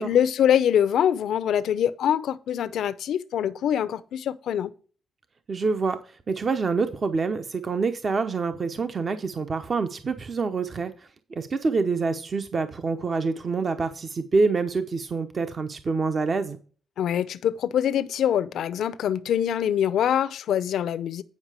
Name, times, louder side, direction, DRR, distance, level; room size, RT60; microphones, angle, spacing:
voice 1, 0.0-4.7 17.0-21.2, left 9 dB, 75° left, 0.6 m, -24 dB
voice 2, 5.5-6.0 6.3-10.9 11.3-16.6, right 4 dB, 40° right, 0.8 m, -26 dB
9.5 x 5.6 x 4.9 m
cardioid pair, 110°, 0 cm